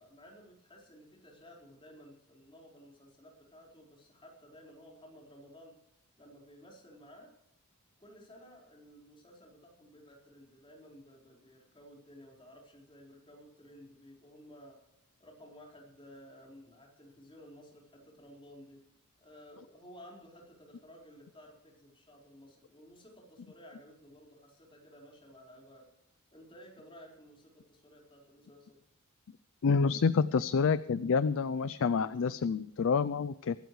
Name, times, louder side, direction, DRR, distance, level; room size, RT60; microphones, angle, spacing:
voice 1, 0.0-5.7 6.2-7.3 8.0-14.8 15.2-18.8 19.2-25.9 26.3-28.8, equal, 25° left, -1 dB, 4.6 m, -55 dB
voice 2, 29.6-33.6, left 5 dB, 60° left, 15 dB, 0.4 m, -28 dB
23.5 x 12.5 x 3.2 m, 0.81 s
head